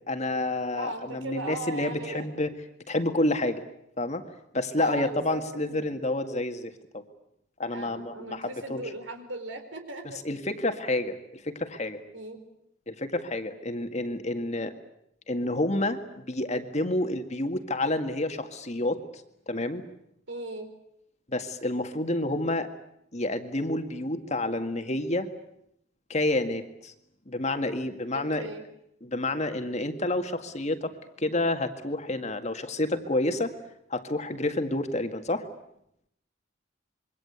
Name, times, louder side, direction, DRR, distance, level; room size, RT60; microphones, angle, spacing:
voice 1, 0.1-2.5 2.9-3.6 4.0-4.2 4.5-7.0 7.6-8.8 10.2-12.0 12.9-14.7 15.3-19.0 19.5-19.8 21.3-22.7 23.1-25.3 26.1-26.9 27.3-28.5 29.0-33.5 33.9-35.5, left 2 dB, 35° left, 7 dB, 1.9 m, -29 dB
voice 2, 0.7-2.3 4.8-5.9 7.7-10.2 12.1-12.4 20.3-20.7 28.1-28.7, right 2 dB, 80° right, 7 dB, 4.4 m, -38 dB
26.5 x 23.5 x 8.3 m, 0.77 s
head